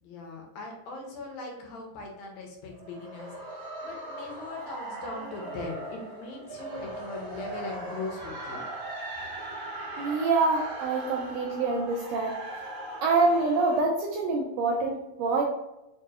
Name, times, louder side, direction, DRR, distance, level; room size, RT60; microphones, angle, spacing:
voice 1, 0.0-3.3 3.8-8.6, left 3 dB, 75° left, 0 dB, 1.9 m, -39 dB
sound 1, 2.7-13.8, right 2 dB, 65° right, 1.8 m, -39 dB
voice 2, 10.0-12.4 13.0-15.4, right 3 dB, 80° right, -1 dB, 1.5 m, -26 dB
4.7 x 2.9 x 2.3 m, 0.92 s
omnidirectional pair, 3.4 m